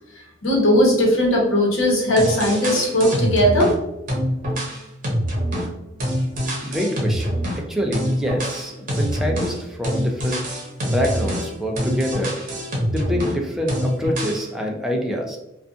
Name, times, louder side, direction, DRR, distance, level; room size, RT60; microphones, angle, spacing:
voice 1, 0.1-3.7, equal, 80° left, -2 dB, 0.9 m, -18 dB
sound 1, 2.2-3.8 4.1-7.6 7.9-13.4 13.7-14.4, equal, 45° right, 0.8 m, -25 dB
voice 2, 6.6-10.5 10.8-12.3 12.9-15.4, equal, ahead, 0 dB, 0.4 m, -26 dB
2.6 x 2.3 x 2.4 m, 0.89 s
head